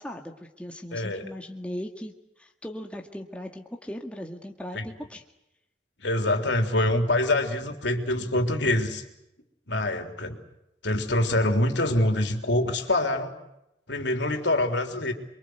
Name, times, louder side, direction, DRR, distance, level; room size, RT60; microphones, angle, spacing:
voice 1, 0.0-5.2, equal, 5° left, 2 dB, 2.0 m, -38 dB
voice 2, 0.9-1.2 4.7-4.9 6.0-9.0 9.7-10.4 10.8-13.3 13.9-15.1, left 1 dB, 70° left, 5 dB, 3.6 m, -25 dB
28.5 x 23.5 x 8.1 m, 0.89 s
head